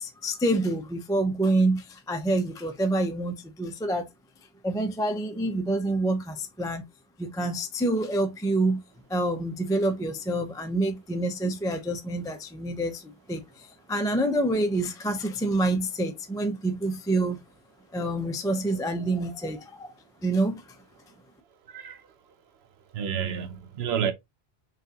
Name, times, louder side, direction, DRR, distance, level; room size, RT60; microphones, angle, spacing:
voice 1, 0.0-4.1 4.6-6.8 7.2-8.8 9.1-17.4 17.9-19.9 20.2-20.6, right 1 dB, 5° left, 0.4 m, -27 dB
voice 2, 21.7-22.1 22.9-24.1, right 8 dB, 85° right, 0.9 m, -30 dB
5.8 x 2.4 x 2.7 m
omnidirectional pair, 1.0 m